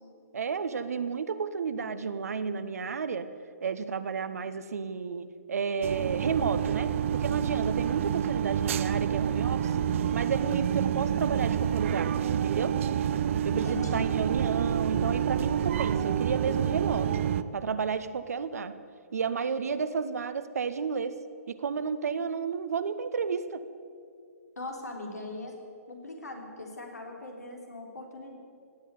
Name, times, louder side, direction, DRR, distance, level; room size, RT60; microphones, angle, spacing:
voice 1, 0.3-3.3 3.6-9.8 10.1-12.8 13.4-17.1 17.5-18.7 19.1-21.2 21.5-23.6, right 5 dB, 70° right, 11 dB, 1.0 m, -32 dB
sound 1, 5.8-17.4, right 9 dB, 55° right, 0.6 m, -28 dB
voice 2, 13.5-14.1 24.6-25.5 25.9-28.3, left 2 dB, 85° left, 1 dB, 3.5 m, -39 dB
17.0 x 8.3 x 9.5 m, 2.3 s
hypercardioid pair, 130°, 9 cm